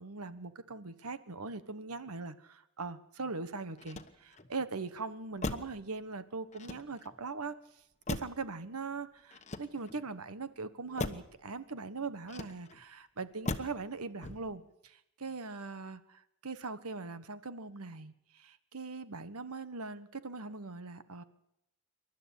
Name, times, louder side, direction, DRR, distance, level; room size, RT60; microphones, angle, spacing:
voice 1, 0.0-7.5 8.1-21.2, right 4 dB, 85° right, 12 dB, 1.4 m, -41 dB
Motor vehicle (road), 3.7-4.5 5.4-5.8 6.5-7.2 8.1-8.5 9.3-10.1 11.0-11.3 12.3-12.8 13.4-13.8 14.2-14.6, left 2 dB, 30° left, 1.1 m, -39 dB
28.0 x 12.0 x 8.4 m, 0.80 s
head